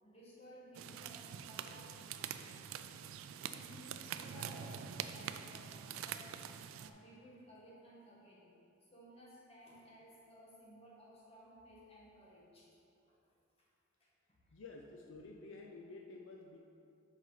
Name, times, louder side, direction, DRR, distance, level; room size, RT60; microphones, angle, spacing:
voice 1, 0.0-2.4 3.5-6.4 6.7-8.5 8.9-12.7 13.1-13.2 13.6-13.7 14.0-14.5, equal, 30° left, -5 dB, 1.4 m, -57 dB
sound 1, 0.7-6.9, right 8 dB, 90° right, 0.3 m, -45 dB
voice 2, 14.5-16.6, left 3 dB, 70° left, 1 dB, 0.5 m, -51 dB
7.3 x 5.2 x 3.9 m, 2.7 s
head